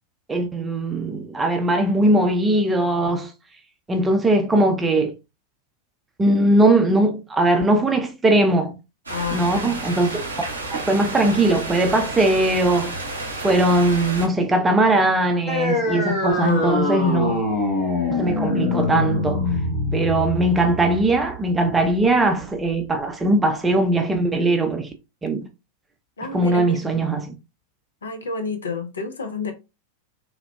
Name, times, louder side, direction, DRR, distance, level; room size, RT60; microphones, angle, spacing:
voice 1, 0.3-3.3 3.9-5.1 6.2-8.7 9.3-10.1 10.9-13.0 13.4-17.4 18.2-19.5 19.9-24.9 25.2-25.5 26.3-27.3, right 2 dB, 15° right, 0.5 m, -20 dB
voice 2, 9.1-9.8 16.3-17.3 26.2-26.9 28.0-29.5, left 4 dB, 70° left, 0.5 m, -30 dB
sound 1, 9.1-14.3, right 2 dB, 80° right, 0.7 m, -31 dB
sound 2, 15.5-22.5, left 2 dB, 25° left, 1.4 m, -24 dB
3.4 x 2.1 x 2.3 m
figure-of-eight pair, 90°, 0 cm